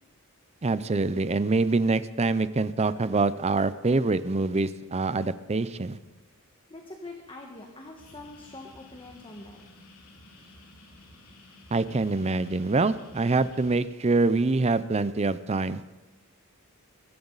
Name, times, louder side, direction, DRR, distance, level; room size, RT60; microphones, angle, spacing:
voice 1, 0.6-6.0 11.7-15.8, right 3 dB, 30° right, 14 dB, 0.5 m, -25 dB
voice 2, 6.7-9.6, left 2 dB, 25° left, 1 dB, 1.5 m, -44 dB
sound 1, 8.0-13.8, left 2 dB, 70° left, 2.7 m, -52 dB
23.0 x 14.5 x 4.0 m, 1.1 s
head